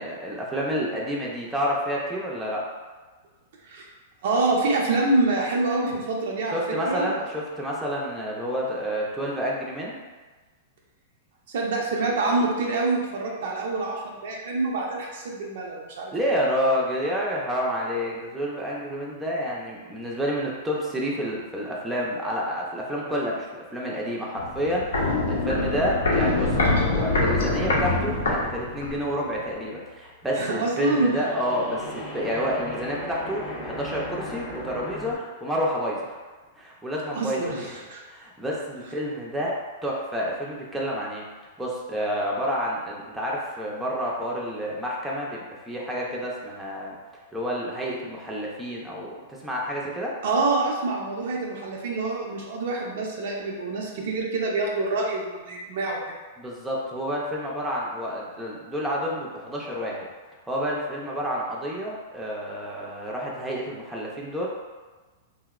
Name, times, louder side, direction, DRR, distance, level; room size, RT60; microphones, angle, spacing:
voice 1, 0.0-2.7 6.5-10.0 16.1-26.6 26.9-36.2 36.6-37.7 38.1-41.2 41.6-47.0 47.3-50.2 56.4-60.1 60.5-64.5, equal, 5° right, -4 dB, 0.4 m, -29 dB
voice 2, 4.2-7.2 11.5-16.1 30.3-31.1 37.2-38.0 50.2-56.0, right 3 dB, 70° right, -2 dB, 0.5 m, -26 dB
Walk footsteps, 24.4-29.1 29.3-29.4, left 2 dB, 85° left, 0.5 m, -24 dB
sound 1, 25.4-30.2 30.5-35.2, left 1 dB, 40° left, 0.7 m, -39 dB
2.7 x 2.0 x 2.3 m, 1.3 s
hypercardioid pair, 125°, 0 cm